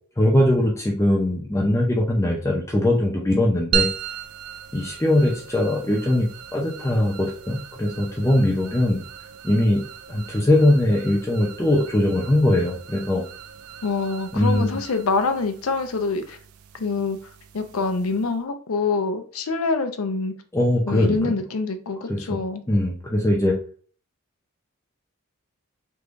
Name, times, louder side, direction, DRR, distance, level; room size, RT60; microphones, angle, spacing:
voice 1, 0.2-3.9 4.7-9.0 9.4-9.8 10.1-13.2 14.3-14.7 20.5-21.3 22.1-22.2 22.7-23.5, left 1 dB, 15° left, -1 dB, 0.5 m, -21 dB
sound 1, 3.7-18.4, right 8 dB, 80° right, 0.4 m, -36 dB
voice 2, 13.8-16.4 16.7-17.2 17.5-20.3 20.9-22.6, left 4 dB, 80° left, 7 dB, 0.5 m, -25 dB
3.5 x 3.1 x 2.5 m, 0.42 s
head